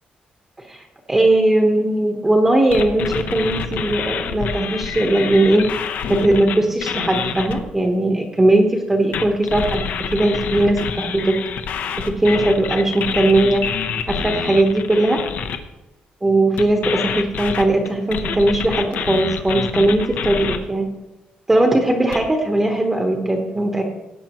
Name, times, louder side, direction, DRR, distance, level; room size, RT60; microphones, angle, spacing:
voice 1, 1.1-5.7 6.1-9.8 10.1-11.4 12.0-13.7 14.1-15.2 16.2-20.9 21.5-23.8, right 1 dB, 10° right, 2 dB, 1.0 m, -18 dB
sound 1, 2.7-7.6 9.1-15.6 16.6-20.6 22.1-22.2, left 7 dB, 65° left, 0.9 m, -27 dB
17.5 x 8.7 x 3.0 m, 1.0 s
cardioid pair, 170°, 3 cm